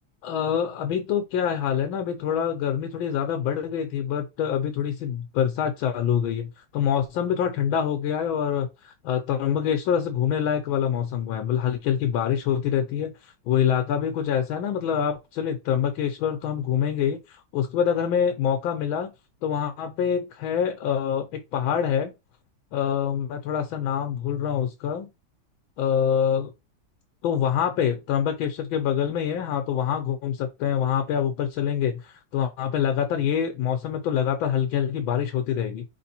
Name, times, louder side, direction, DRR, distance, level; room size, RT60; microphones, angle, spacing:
voice 1, 0.2-19.1 19.4-22.1 22.7-25.1 25.8-26.5 27.2-35.8, left 8 dB, 85° left, 1.5 m, -25 dB
4.7 x 3.3 x 2.8 m
omnidirectional pair, 2.1 m